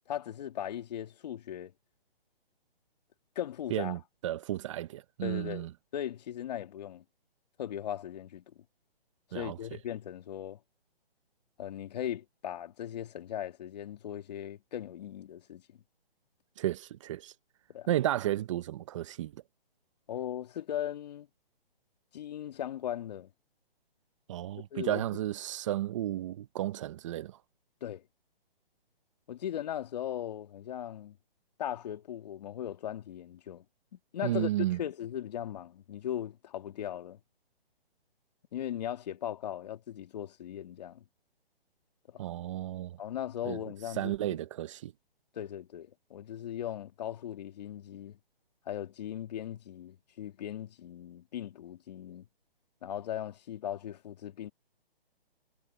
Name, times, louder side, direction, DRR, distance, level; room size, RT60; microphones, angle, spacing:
voice 1, 0.1-1.7 3.4-3.9 5.2-5.7 5.9-7.0 7.6-8.6 9.3-10.6 11.6-15.8 17.7-17.9 20.1-21.3 22.1-23.3 24.7-25.0 27.8-28.0 29.3-31.2 31.6-33.6 33.9-34.5 34.8-37.2 38.5-41.0 42.1-42.2 43.0-44.4 45.3-48.2 48.7-52.3 52.8-54.5, left 10 dB, 45° left, 2.4 m, -38 dB
voice 2, 3.7-5.7 9.3-9.6 16.6-17.3 17.9-19.4 24.3-27.4 34.2-34.8 42.2-43.0 43.4-43.6 44.0-44.9, right 13 dB, 30° right, 1.2 m, -33 dB
hypercardioid pair, 155°, 30 cm